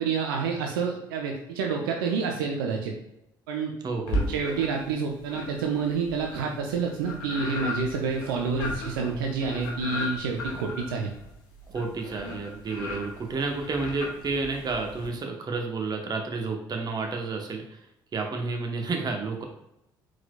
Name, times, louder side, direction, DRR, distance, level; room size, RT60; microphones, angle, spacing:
voice 1, 0.0-2.9 3.5-3.7 4.3-11.1, right 5 dB, 80° right, 1 dB, 0.5 m, -28 dB
voice 2, 3.8-4.4 11.7-17.8 18.1-19.4, right 3 dB, 35° right, 3 dB, 0.9 m, -31 dB
sound 1, 4.1-4.9 5.3-15.1, left 1 dB, 75° left, 1.0 m, -35 dB
4.8 x 3.8 x 2.2 m, 0.84 s
hypercardioid pair, 55°, 11 cm